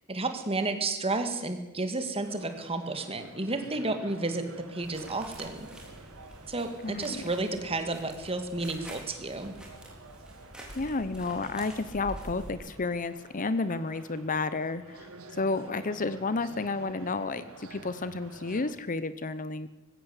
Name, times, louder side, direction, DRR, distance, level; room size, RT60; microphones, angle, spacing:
voice 1, 0.1-5.7 6.5-9.5, right 2 dB, 25° right, 7 dB, 2.2 m, -32 dB
sound 1, 2.2-18.7, right 3 dB, 70° right, 2.3 m, -50 dB
sound 2, 4.8-12.5, right 1 dB, 5° right, 4.2 m, -47 dB
voice 2, 6.8-7.2 10.8-15.1 15.3-19.7, left 3 dB, 40° left, 14 dB, 0.8 m, -31 dB
20.0 x 16.0 x 8.3 m, 1.1 s
head